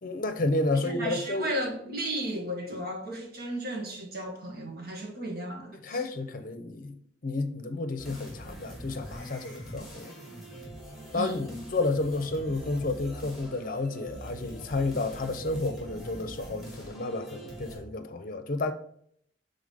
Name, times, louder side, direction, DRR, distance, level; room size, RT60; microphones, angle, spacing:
voice 1, 0.0-1.5 5.8-10.1 11.1-18.7, left 2 dB, 50° left, 0.7 m, -31 dB
voice 2, 0.8-6.0 11.1-11.4, right 1 dB, 55° right, 1.4 m, -34 dB
sound 1, 8.0-17.8, equal, ahead, 2.2 m, -43 dB
5.0 x 3.9 x 5.3 m
head